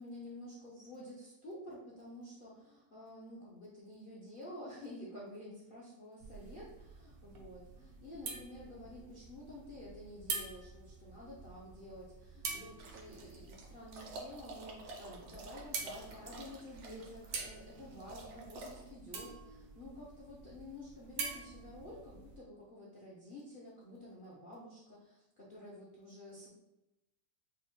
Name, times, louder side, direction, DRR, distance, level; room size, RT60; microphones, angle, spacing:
voice 1, 0.0-26.5, left 1 dB, 60° left, -7 dB, 0.5 m, -50 dB
sound 1, 6.2-22.4, right 4 dB, 85° right, 1.4 m, -47 dB
sound 2, 12.8-18.9, right 2 dB, 65° right, 0.7 m, -50 dB
5.2 x 2.1 x 3.0 m, 0.91 s
omnidirectional pair, 1.9 m